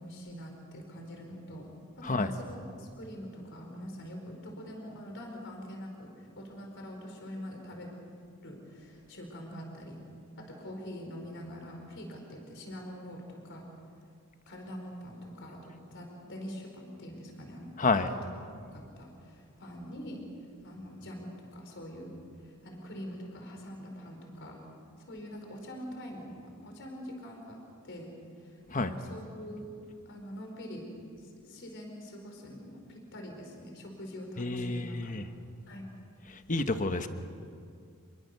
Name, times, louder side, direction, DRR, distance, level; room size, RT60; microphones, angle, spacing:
voice 1, 0.0-7.9 8.4-10.0 10.4-13.7 14.5-18.2 18.7-20.3 20.6-22.2 22.4-24.6 25.1-27.6 27.8-29.7 30.0-30.9 31.2-35.2 35.7-35.9, equal, 60° left, 2 dB, 4.9 m, -44 dB
voice 2, 17.8-18.1 28.7-28.9 34.4-35.3 36.3-37.1, left 3 dB, 35° left, 8 dB, 1.2 m, -29 dB
27.5 x 22.5 x 6.9 m, 2.3 s
head